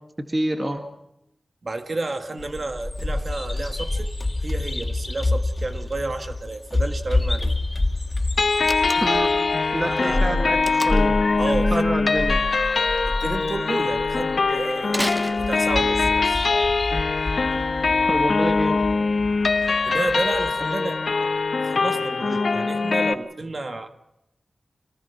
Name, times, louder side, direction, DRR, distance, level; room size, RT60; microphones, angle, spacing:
voice 1, 0.3-0.8 9.0-9.3 9.7-11.2 11.7-12.4 18.1-18.8, right 1 dB, 25° right, 2.0 m, -27 dB
voice 2, 1.6-4.1 4.4-7.6 8.9-9.1 9.8-10.4 11.4-11.9 13.1-16.5 19.8-21.3 21.6-23.9, right 2 dB, 55° right, 1.9 m, -31 dB
Bird vocalization bird call bird song, 2.4-20.5, left 2 dB, 30° left, 2.6 m, -28 dB
sound 1, 8.4-23.1, left 4 dB, 70° left, 1.4 m, -22 dB
Slam, 8.6-9.4 10.6-11.2 14.9-16.0, equal, 10° right, 1.5 m, -31 dB
26.5 x 19.0 x 6.1 m
cardioid pair, 50°, 0 cm